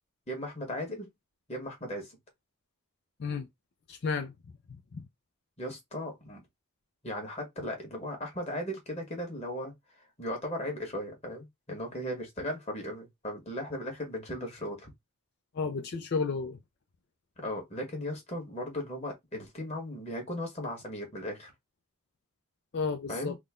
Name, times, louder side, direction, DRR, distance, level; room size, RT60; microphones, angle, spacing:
voice 1, 0.3-1.1 1.5-2.2 5.6-6.4 7.0-9.7 10.2-14.9 17.4-21.5 23.1-23.4, left 1 dB, 30° left, 1.4 m, -37 dB
voice 2, 3.9-4.3 15.6-16.6 22.7-23.3, left 5 dB, 50° left, 0.4 m, -32 dB
3.7 x 2.2 x 3.6 m
head